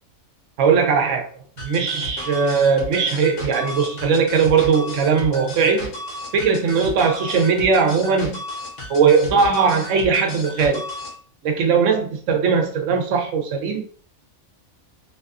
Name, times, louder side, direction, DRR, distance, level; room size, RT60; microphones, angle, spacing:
voice 1, 0.6-1.2 1.6-5.9 6.3-8.4 8.9-10.8 11.4-13.8, right 5 dB, 70° right, 4 dB, 0.8 m, -19 dB
sound 1, 1.6-11.2, left 1 dB, 60° left, 1.1 m, -34 dB
2.6 x 2.3 x 2.3 m, 0.43 s
omnidirectional pair, 1.5 m